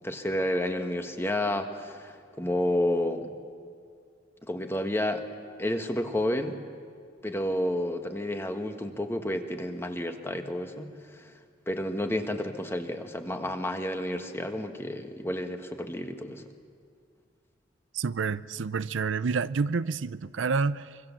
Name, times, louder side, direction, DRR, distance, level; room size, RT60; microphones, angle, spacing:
voice 1, 0.0-3.3 4.4-5.2 5.6-6.6 7.2-11.2 11.7-16.4, left 1 dB, 15° left, 6 dB, 1.5 m, -30 dB
voice 2, 17.9-21.0, right 5 dB, 80° right, 16 dB, 0.5 m, -29 dB
25.0 x 24.5 x 7.3 m, 2.2 s
head